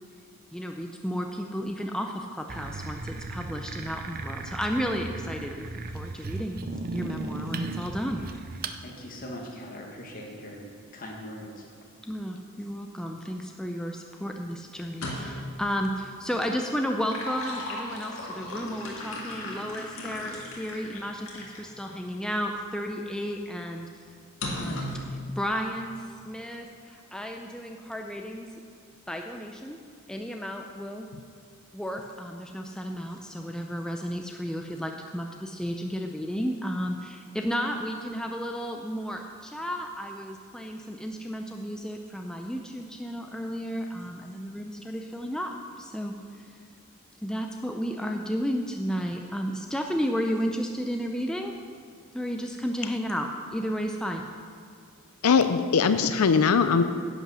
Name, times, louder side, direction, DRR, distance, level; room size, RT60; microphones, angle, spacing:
voice 1, 0.5-6.6 6.9-8.2 12.1-23.9 24.4-28.5 29.1-29.8 30.1-31.1 31.7-46.6 47.2-51.5 52.1-54.3, equal, 5° left, 2 dB, 0.5 m, -33 dB
sound 1, 2.5-8.8, right 3 dB, 40° right, 0.6 m, -36 dB
voice 2, 8.8-10.6 10.9-11.6, left 1 dB, 40° left, -1 dB, 1.9 m, -40 dB
sound 2, 14.9-15.5 16.8-21.7 22.3-22.4 24.4-25.1, left 1 dB, 65° left, 2.1 m, -36 dB
voice 3, 55.2-56.8, left 5 dB, 85° left, 10 dB, 0.5 m, -21 dB
10.5 x 8.2 x 6.1 m, 2.3 s
head